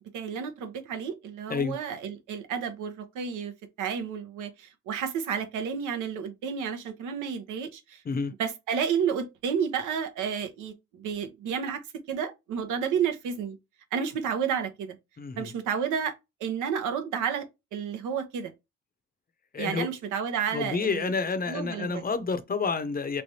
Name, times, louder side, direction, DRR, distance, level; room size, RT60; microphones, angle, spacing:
voice 1, 0.1-3.5 3.8-8.0 8.4-13.6 13.9-15.0 15.4-16.1 16.4-17.5 17.7-18.5 19.6-21.1 21.5-22.0, right 7 dB, 85° right, 0.8 m, -31 dB
voice 2, 15.2-15.5 19.5-19.9 20.5-23.2, left 4 dB, 30° left, 0.6 m, -29 dB
3.3 x 3.3 x 2.7 m
cardioid pair, 90°, 30 cm